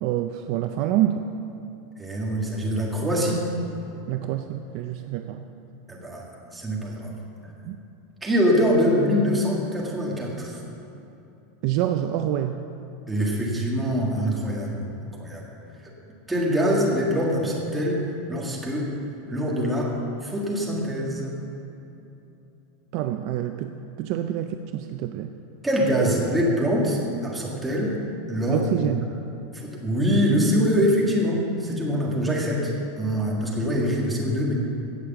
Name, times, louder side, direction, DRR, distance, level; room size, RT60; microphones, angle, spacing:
voice 1, 0.0-1.2 4.1-5.4 7.6-7.8 11.6-12.6 22.9-25.3 28.5-29.1, right 12 dB, 40° right, 7 dB, 0.4 m, -27 dB
voice 2, 2.0-3.4 5.9-7.1 7.4-7.5 8.2-10.6 13.1-15.4 16.3-18.0 18.3-18.9 19.3-20.0 20.2-21.4 25.6-28.0 28.3-28.6 29.5-32.7 33.0-34.5, equal, 5° right, -3 dB, 1.7 m, -24 dB
16.5 x 6.5 x 7.0 m, 2.9 s
supercardioid pair, 175°, 0 cm